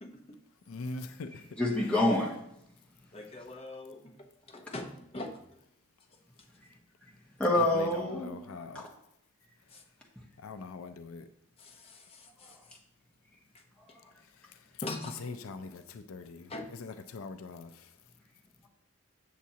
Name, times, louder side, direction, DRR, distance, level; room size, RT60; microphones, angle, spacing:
voice 1, 0.0-0.4 3.1-5.4 9.7-9.8 11.6-12.8 14.8-15.8 16.5-16.7, left 2 dB, 25° left, 0.8 m, -43 dB
voice 2, 0.7-1.4 7.5-8.9 10.4-11.3 15.2-17.9, left 3 dB, 80° left, 0.4 m, -42 dB
voice 3, 1.6-2.4 7.4-8.9 12.4-12.5, left 1 dB, 5° left, 1.1 m, -28 dB
7.3 x 7.1 x 2.8 m
head